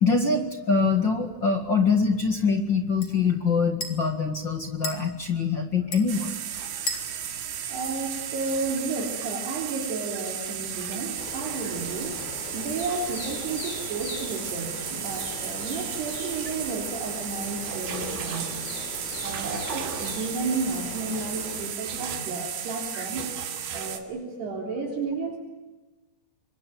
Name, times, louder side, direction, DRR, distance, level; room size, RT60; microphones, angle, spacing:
voice 1, 0.0-6.3 22.9-23.0, left 4 dB, 50° left, 5 dB, 1.3 m, -24 dB
sound 1, 0.8-8.6, left 2 dB, 35° left, 3.2 m, -41 dB
sound 2, 6.1-24.0, right 8 dB, 80° right, 4.5 m, -34 dB
voice 2, 7.7-12.2 12.5-18.5 19.2-23.3 23.7-25.4, right 4 dB, 65° right, 0 dB, 5.5 m, -32 dB
sound 3, 11.2-21.7, left 5 dB, 75° left, 6.1 m, -40 dB
26.5 x 24.0 x 9.2 m, 1.1 s
omnidirectional pair, 5.2 m